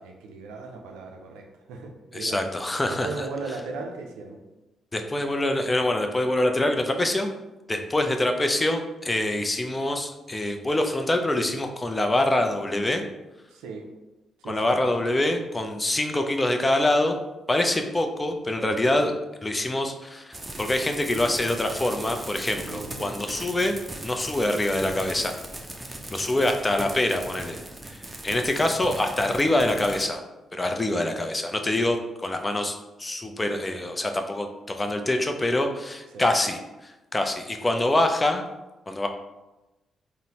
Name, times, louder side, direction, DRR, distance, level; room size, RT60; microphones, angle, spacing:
voice 1, 0.0-2.4 2.8-4.4 13.5-13.9 14.4-14.8 18.8-19.1 22.6-23.2 28.3-28.5 36.1-36.3, right 3 dB, 80° right, 2 dB, 0.4 m, -37 dB
voice 2, 2.1-3.3 4.9-7.3 7.7-13.0 14.4-17.2 17.5-19.1 19.4-23.8 24.0-25.3 26.1-27.6 27.8-30.2 30.5-38.4 38.9-39.1, left 1 dB, 25° left, 5 dB, 0.5 m, -25 dB
sound 1, 20.3-30.0, right 1 dB, 20° right, 0.6 m, -39 dB
3.7 x 2.1 x 2.8 m, 1.0 s
hypercardioid pair, 45°, 0 cm